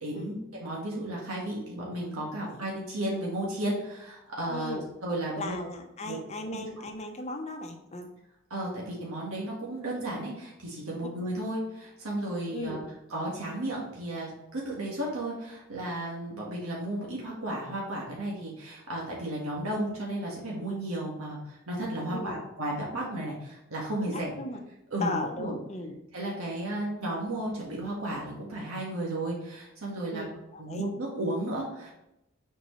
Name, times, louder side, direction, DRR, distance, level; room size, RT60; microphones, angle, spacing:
voice 1, 0.0-5.5 6.0-6.2 8.5-12.8 13.1-24.3 24.9-25.5 26.1-30.2 30.6-31.9, right 1 dB, 85° right, -4 dB, 1.6 m, -34 dB
voice 2, 4.5-4.9 5.4-8.1 12.5-12.9 22.1-22.4 24.1-24.6 25.0-26.0 30.1-30.8, left 2 dB, 30° left, 4 dB, 0.8 m, -37 dB
6.7 x 4.5 x 3.1 m, 0.88 s
head